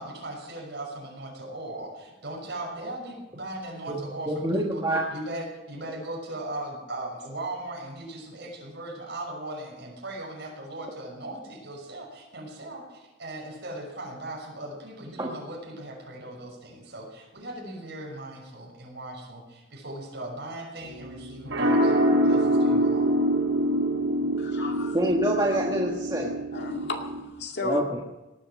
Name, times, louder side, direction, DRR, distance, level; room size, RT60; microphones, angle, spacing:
voice 1, 0.0-21.9 22.2-23.1, right 1 dB, 60° right, -1 dB, 6.2 m, -38 dB
voice 2, 4.3-5.0 15.2-15.3 24.9-26.3 27.6-28.0, right 1 dB, 20° right, -1 dB, 1.5 m, -26 dB
sound 1, 20.8-27.2, right 1 dB, 80° right, 3.8 m, -25 dB
voice 3, 24.4-25.0 26.5-27.8, left 2 dB, 55° left, 2 dB, 2.2 m, -33 dB
18.5 x 12.0 x 6.4 m, 1.0 s
head